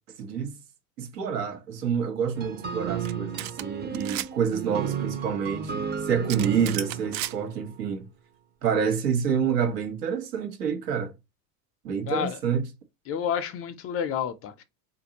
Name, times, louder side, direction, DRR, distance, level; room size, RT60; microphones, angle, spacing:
voice 1, 0.2-0.6 1.0-8.1 8.6-11.1 11.8-12.7, right 7 dB, 85° right, 1.2 m, -28 dB
sound 1, 2.3-7.8, right 8 dB, 20° right, 0.6 m, -33 dB
sound 2, 2.4-10.2, right 7 dB, 45° right, 1.2 m, -50 dB
sound 3, 3.0-3.1 3.4-3.6 3.9-4.3 6.3-7.4, right 14 dB, 65° right, 0.5 m, -33 dB
voice 2, 12.1-12.4 13.1-14.6, left 8 dB, 35° left, 0.4 m, -30 dB
3.9 x 2.5 x 2.8 m
supercardioid pair, 110°, 47 cm